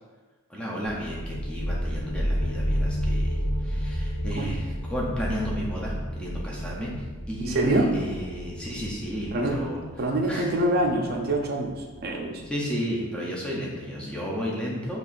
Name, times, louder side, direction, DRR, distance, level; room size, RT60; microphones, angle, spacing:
voice 1, 0.5-9.8 10.3-10.6 12.4-15.0, equal, 5° left, -4 dB, 0.5 m, -33 dB
sound 1, 0.8-12.2, equal, 70° left, 1.1 m, -31 dB
voice 2, 7.4-7.9 9.3-9.6 10.0-12.4, right 1 dB, 45° right, 1 dB, 0.5 m, -25 dB
4.0 x 2.9 x 2.5 m, 1.3 s
head